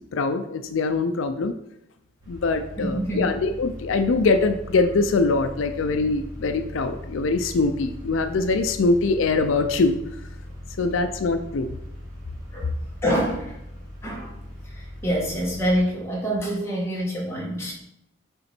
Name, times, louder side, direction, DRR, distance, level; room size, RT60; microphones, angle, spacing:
voice 1, 0.1-1.6 2.3-10.0 10.8-11.7, left 3 dB, 75° left, 8 dB, 0.4 m, -23 dB
sound 1, 2.2-15.8, left 1 dB, 15° right, 1.9 m, -40 dB
voice 2, 2.8-3.3 12.5-12.7 13.0-13.6 14.0-14.3 14.7-17.7, equal, 15° left, -3 dB, 1.5 m, -26 dB
6.8 x 4.3 x 4.3 m, 0.83 s
head